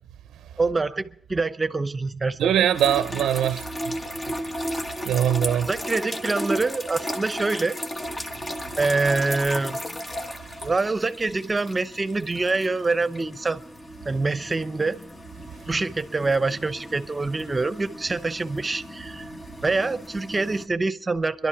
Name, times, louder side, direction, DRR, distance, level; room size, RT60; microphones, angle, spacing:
voice 1, 0.6-2.5 5.7-7.8 8.8-9.8 10.6-13.6 14.0-15.0 15.7-19.3 19.6-21.5, right 3 dB, 30° right, 0.8 m, -25 dB
voice 2, 2.4-3.9 5.1-5.7, right 10 dB, 80° right, 0.5 m, -22 dB
sound 1, 2.7-20.7, equal, 30° left, 1.5 m, -35 dB
22.5 x 12.0 x 4.9 m
supercardioid pair, 60°, 0 cm